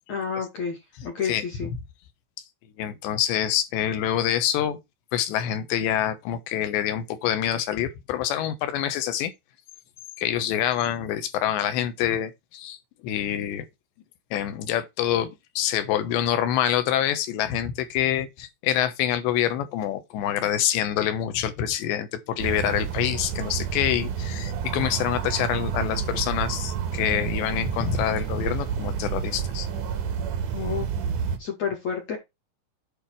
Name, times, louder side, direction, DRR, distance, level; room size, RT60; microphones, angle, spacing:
voice 1, 0.1-1.7 30.5-30.9 31.4-32.2, left 6 dB, 50° left, 2.3 m, -30 dB
voice 2, 2.8-4.8 5.1-9.3 10.2-12.8 13.0-13.7 14.3-29.7, left 11 dB, 70° left, 2.9 m, -26 dB
sound 1, 22.4-31.4, right 8 dB, 90° right, 1.8 m, -29 dB
8.8 x 5.4 x 4.7 m
omnidirectional pair, 6.0 m